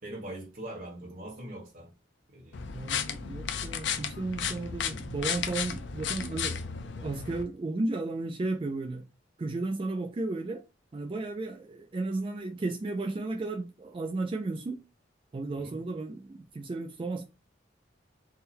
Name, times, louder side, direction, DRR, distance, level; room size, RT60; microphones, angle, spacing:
voice 1, 0.0-1.9 2.3-2.6 15.5-15.8, right 1 dB, 45° right, 1.4 m, -42 dB
sound 1, 2.5-7.4, left 7 dB, 70° left, 0.4 m, -34 dB
voice 2, 2.7-6.7 7.0-9.1 9.4-10.6 10.9-14.8 15.3-17.2, right 2 dB, 25° right, 0.3 m, -34 dB
3.6 x 2.1 x 4.3 m
head